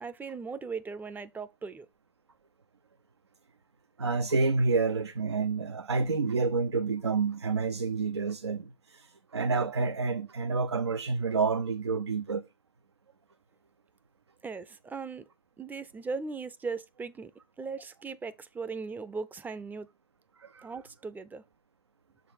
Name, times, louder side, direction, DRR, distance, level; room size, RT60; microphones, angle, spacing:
voice 1, 0.0-1.9 14.4-15.2 15.6-17.3 17.6-19.9 20.6-21.4, right 4 dB, 15° right, 0.4 m, -38 dB
voice 2, 4.0-12.4 20.4-20.7, right 4 dB, 90° right, 0.5 m, -29 dB
6.6 x 3.9 x 4.3 m
figure-of-eight pair, 95°, 14 cm